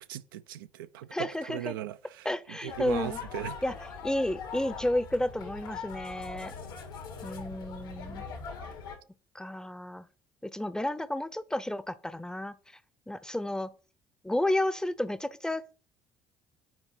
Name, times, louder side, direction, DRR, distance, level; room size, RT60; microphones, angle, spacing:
voice 1, 0.0-3.6, right 12 dB, 75° right, 0.4 m, -38 dB
voice 2, 1.1-1.8 2.2-3.2 3.6-3.8 4.0-6.5 7.2-8.3 9.3-10.1 10.4-12.6 13.1-13.7 14.2-15.7, left 1 dB, 5° left, 0.6 m, -31 dB
sound 1, 2.7-9.0, left 5 dB, 75° left, 1.7 m, -41 dB
7.4 x 4.6 x 4.5 m
figure-of-eight pair, 50°, 12 cm